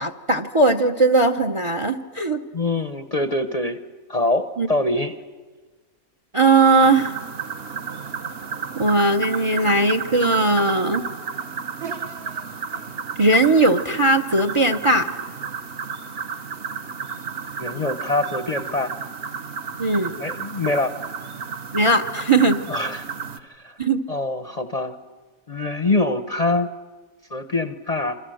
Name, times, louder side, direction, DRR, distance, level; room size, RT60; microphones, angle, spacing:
voice 1, 0.0-2.4 4.6-4.7 6.3-7.2 8.8-11.0 13.2-15.1 19.8-20.2 21.7-22.6 23.8-24.0, right 2 dB, 25° right, 9 dB, 0.8 m, -18 dB
voice 2, 2.5-3.8 4.1-5.1 17.6-19.0 20.2-20.9 22.7-23.1 23.6-23.7 24.1-24.9 25.5-26.7 27.3-28.2, left 2 dB, 35° left, 9 dB, 0.8 m, -24 dB
sound 1, 6.8-23.4, right 6 dB, 45° right, 1.2 m, -32 dB
28.0 x 25.5 x 7.8 m, 1.3 s
omnidirectional pair, 1.5 m